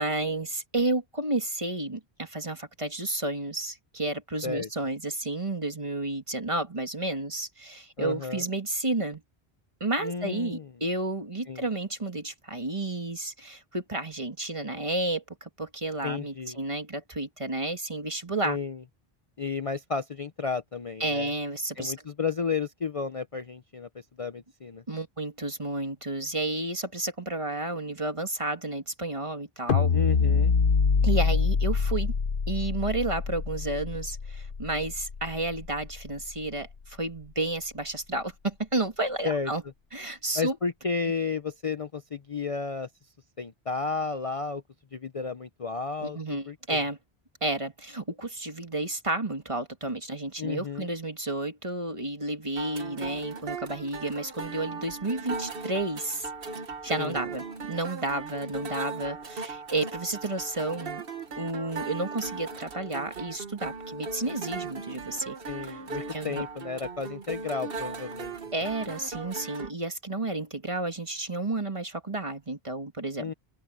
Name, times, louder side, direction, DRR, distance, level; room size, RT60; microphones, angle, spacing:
voice 1, 0.0-9.2 9.8-18.6 21.0-21.9 24.9-29.9 31.0-32.1 32.5-39.6 39.9-40.6 46.0-47.0 47.4-56.3 56.8-61.0 61.4-65.4 65.6-65.8 66.1-66.4 68.5-73.3, right 2 dB, 30° right, 1.9 m, -31 dB
voice 2, 8.0-8.4 10.0-10.7 11.5-11.6 16.0-16.6 18.4-18.8 19.4-21.3 21.8-23.9 24.2-24.8 29.9-30.5 39.2-39.5 40.3-42.9 43.4-44.6 44.9-46.8 50.4-50.9 57.0-57.2 65.5-68.4 68.8-68.9 73.2-73.3, left 5 dB, 35° left, 0.7 m, -32 dB
sound 1, 29.7-36.0, left 5 dB, 55° left, 1.1 m, -25 dB
sound 2, 52.6-69.7, right 4 dB, 60° right, 1.5 m, -38 dB
open air
omnidirectional pair, 1.1 m